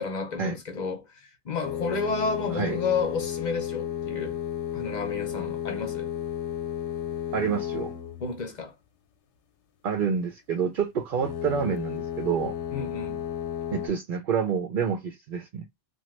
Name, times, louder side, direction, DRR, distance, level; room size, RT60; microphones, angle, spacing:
voice 1, 0.0-4.4 4.7-6.1 8.2-8.7 12.7-13.3, left 4 dB, 45° left, 0.8 m, -31 dB
sound 1, 1.6-8.4 11.1-13.9, left 10 dB, 85° left, 1.0 m, -33 dB
voice 2, 7.3-7.9 9.8-12.5 13.7-15.7, right 7 dB, 60° right, 0.7 m, -28 dB
2.9 x 2.3 x 3.1 m
omnidirectional pair, 1.1 m